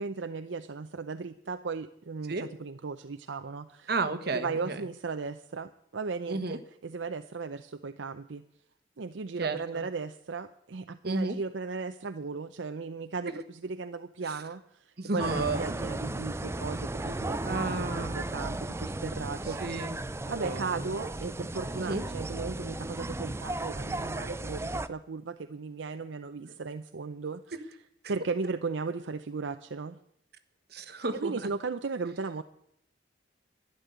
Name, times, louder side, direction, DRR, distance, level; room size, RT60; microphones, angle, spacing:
voice 1, 0.0-3.9 4.3-8.4 9.0-19.6 20.3-27.4 28.1-30.0 30.8-32.4, right 4 dB, 75° right, 9 dB, 0.6 m, -36 dB
voice 2, 3.9-4.8 6.3-6.6 9.4-9.8 11.0-11.4 13.3-13.4 14.3-14.4 15.0-15.8 17.4-18.2 19.6-20.0 20.3-20.9 21.9-22.0 26.4-26.5 30.7-31.3, right 3 dB, 55° right, 8 dB, 1.3 m, -32 dB
sound 1, 15.2-24.9, right 2 dB, 15° right, 0.5 m, -35 dB
12.0 x 11.0 x 7.9 m, 0.75 s
head